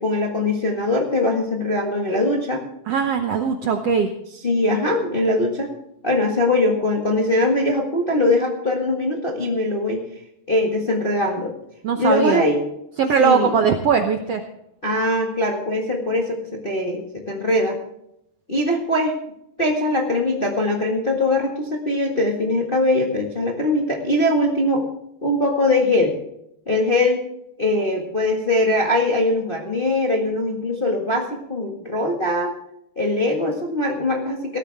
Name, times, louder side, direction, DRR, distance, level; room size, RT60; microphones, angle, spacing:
voice 1, 0.0-2.6 4.4-5.7 6.0-10.0 10.5-11.5 12.0-12.6 13.2-13.5 14.8-17.8 18.5-19.1 19.6-24.9 25.2-26.1 26.7-27.2 27.6-32.5 32.9-34.6, left 1 dB, 25° left, 0 dB, 1.2 m, -21 dB
voice 2, 2.9-4.1 11.8-12.4 13.0-14.4, right 6 dB, 70° right, 5 dB, 1.5 m, -20 dB
18.0 x 14.0 x 3.5 m, 0.78 s
omnidirectional pair, 3.9 m